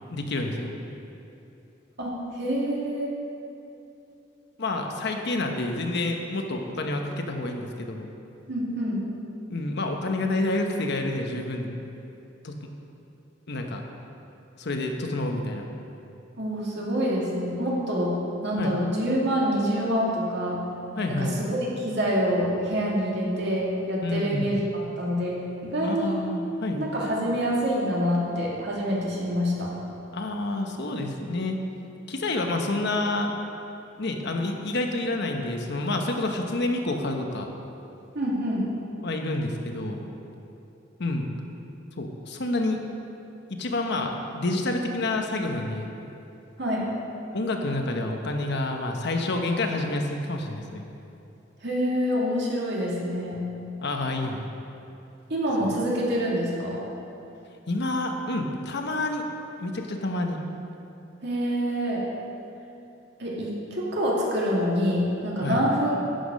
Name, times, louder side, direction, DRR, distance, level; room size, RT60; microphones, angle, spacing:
voice 1, 0.1-0.7 4.6-8.1 9.5-11.7 12.4-12.7 13.5-13.8 14.6-15.7 18.6-18.7 21.0-21.4 24.0-24.6 25.8-26.8 30.1-31.6 32.1-33.3 34.0-37.5 39.0-40.0 41.0-41.3 42.0-42.8 43.5-45.9 47.3-50.8 53.8-54.5 55.6-55.7 57.7-59.2 59.6-60.4 65.4-65.6, left 2 dB, 60° left, 3 dB, 1.0 m, -28 dB
voice 2, 2.0-3.1 8.5-9.0 16.4-20.6 21.1-26.2 26.8-29.7 38.1-38.7 46.6-46.9 51.6-53.4 55.3-56.8 61.2-62.1 63.2-65.9, equal, 60° right, -4 dB, 2.4 m, -26 dB
11.5 x 8.3 x 5.3 m, 2.8 s
head